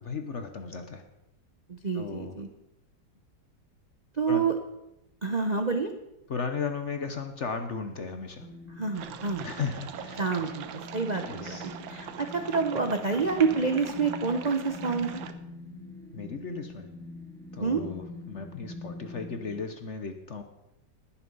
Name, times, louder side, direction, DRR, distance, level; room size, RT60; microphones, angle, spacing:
voice 1, 0.0-1.0 1.9-2.4 4.3-4.5 6.3-8.5 9.4-10.2 11.2-11.8 16.1-16.9 17.5-20.4, left 5 dB, 50° left, 7 dB, 1.0 m, -35 dB
voice 2, 1.7-2.5 4.2-4.6 5.2-5.9 8.8-9.5 10.2-10.6 10.9-15.2 17.6-17.8, right 5 dB, 50° right, 6 dB, 0.5 m, -28 dB
sound 1, 8.4-19.6, left 2 dB, ahead, 2.6 m, -44 dB
sound 2, 8.9-15.3, right 9 dB, 80° right, 1.6 m, -41 dB
19.5 x 7.1 x 5.4 m, 0.88 s
omnidirectional pair, 2.1 m